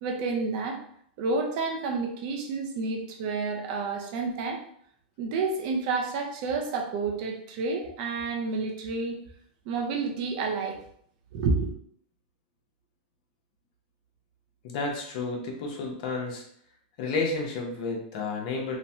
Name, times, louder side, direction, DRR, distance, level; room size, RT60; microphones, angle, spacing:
voice 1, 0.0-0.8 1.2-4.6 5.2-9.2 9.7-10.8 11.3-11.7, right 4 dB, 50° right, 2 dB, 0.6 m, -29 dB
voice 2, 14.6-16.4 17.0-18.8, left 3 dB, 55° left, 0 dB, 0.8 m, -31 dB
3.0 x 2.1 x 2.7 m, 0.65 s
supercardioid pair, 145°, 5 cm